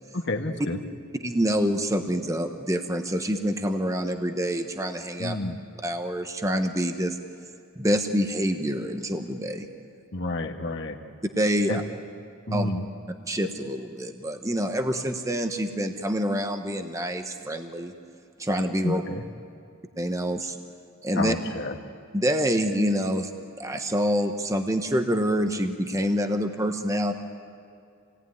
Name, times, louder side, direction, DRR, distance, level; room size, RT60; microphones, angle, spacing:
voice 1, 0.3-0.8 5.2-5.6 10.1-10.9 11.7-11.8 12.5-12.8 18.8-19.2 21.1-21.8, left 2 dB, 55° left, 3 dB, 1.6 m, -29 dB
voice 2, 1.2-5.4 5.8-7.2 7.8-9.7 11.4-11.8 12.5-12.7 13.3-17.9 18.4-19.0 20.0-20.6 21.0-21.3 22.1-23.3 23.6-27.1, equal, 15° right, 6 dB, 1.0 m, -26 dB
28.0 x 18.5 x 9.6 m, 2.5 s
head